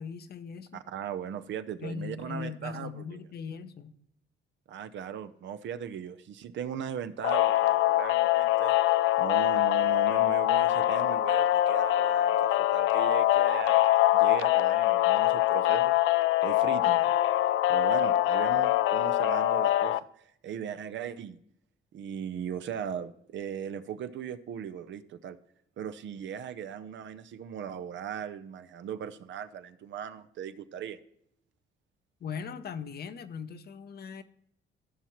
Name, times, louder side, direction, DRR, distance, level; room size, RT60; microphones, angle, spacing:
voice 1, 0.0-0.8 1.8-4.0 32.2-34.2, left 6 dB, 55° left, 0.8 m, -39 dB
voice 2, 0.7-3.2 4.7-8.7 9.2-13.8 14.1-15.9 16.4-17.1 17.7-21.4 21.9-25.4 25.8-31.0, right 8 dB, 70° right, 0.7 m, -38 dB
sound 1, 7.2-20.0, left 14 dB, 80° left, 0.4 m, -24 dB
15.0 x 5.8 x 3.1 m
cardioid pair, 90°, 20 cm